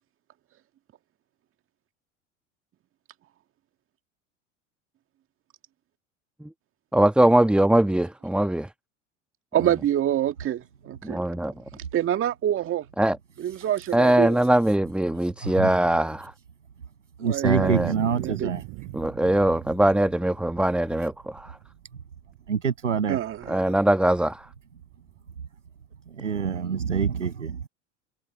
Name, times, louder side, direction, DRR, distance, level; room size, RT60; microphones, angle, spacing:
voice 1, 6.9-8.7 11.0-11.5 13.0-13.2 13.9-16.3 17.4-17.9 18.9-21.6 23.5-24.5, right 1 dB, 5° right, 1.3 m, -21 dB
voice 2, 9.5-11.2 11.9-12.9 13.4-14.4 17.2-17.7 18.1-18.5 23.1-23.6, right 11 dB, 35° right, 1.9 m, -26 dB
voice 3, 17.2-18.6 22.5-23.2 26.1-27.7, right 6 dB, 85° right, 7.7 m, -26 dB
Thunder, 17.6-22.4 22.6-22.7 23.0-23.5 24.0-25.2, right 33 dB, 55° right, 8.0 m, -37 dB
figure-of-eight pair, 75°, 36 cm